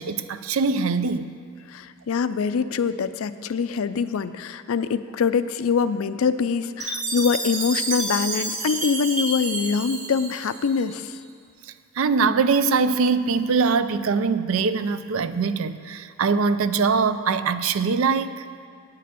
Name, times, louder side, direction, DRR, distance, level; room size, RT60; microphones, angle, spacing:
voice 1, 0.0-1.3 12.0-18.4, right 5 dB, 70° right, 12 dB, 0.4 m, -22 dB
voice 2, 1.7-11.2, left 6 dB, 70° left, 13 dB, 0.4 m, -24 dB
Chime, 6.8-11.1, right 2 dB, 35° right, 1.4 m, -30 dB
9.3 x 6.7 x 7.6 m, 2.3 s
head